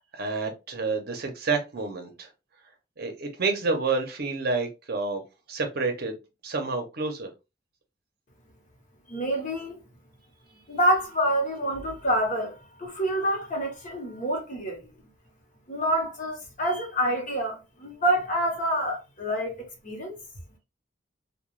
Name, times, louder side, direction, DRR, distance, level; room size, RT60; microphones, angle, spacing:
voice 1, 0.1-2.3 3.0-5.2 5.5-6.2 6.4-7.3, right 4 dB, 55° right, 0.7 m, -29 dB
voice 2, 9.1-9.8 10.7-14.9 15.7-20.2, right 1 dB, 45° left, 0.9 m, -27 dB
2.3 x 2.2 x 3.0 m
head